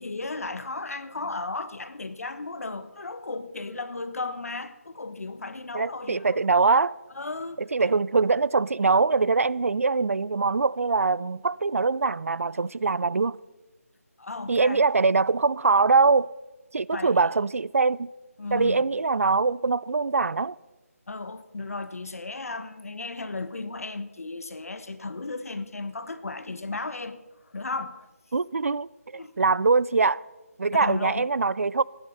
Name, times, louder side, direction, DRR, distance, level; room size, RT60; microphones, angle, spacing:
voice 1, 0.0-6.4 7.2-8.0 14.2-14.9 16.9-17.3 18.4-18.9 21.1-28.1 29.1-29.3 30.7-31.3, left 3 dB, 65° left, 1.2 m, -35 dB
voice 2, 5.7-6.9 7.7-13.4 14.5-16.3 16.7-18.1 18.5-20.5 28.3-30.2 30.6-31.8, right 4 dB, 60° right, 0.4 m, -23 dB
15.0 x 10.0 x 5.5 m
figure-of-eight pair, 170°, 8 cm